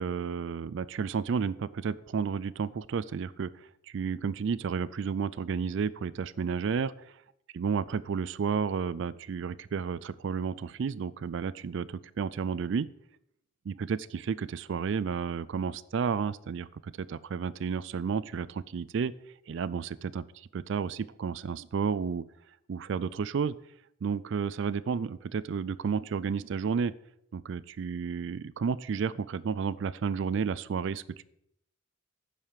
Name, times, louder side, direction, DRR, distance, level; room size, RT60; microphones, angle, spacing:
voice 1, 0.0-6.9 7.5-12.9 13.7-19.1 19.5-22.2 22.7-23.5 24.0-26.9 27.3-31.2, right 6 dB, 60° right, 17 dB, 0.3 m, -32 dB
10.5 x 4.9 x 7.3 m, 0.77 s
head